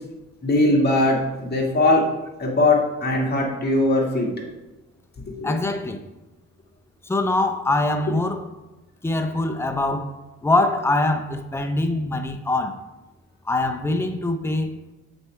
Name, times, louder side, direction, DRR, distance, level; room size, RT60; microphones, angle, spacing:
voice 1, 0.4-2.1 2.4-4.3 5.3-5.5, left 2 dB, 35° left, 1.8 m, -20 dB
voice 2, 5.4-6.0 7.1-8.5 9.0-12.8 13.5-14.8, left 2 dB, 10° left, 0.6 m, -23 dB
7.8 x 3.3 x 4.6 m
cardioid pair, 90°, 30 cm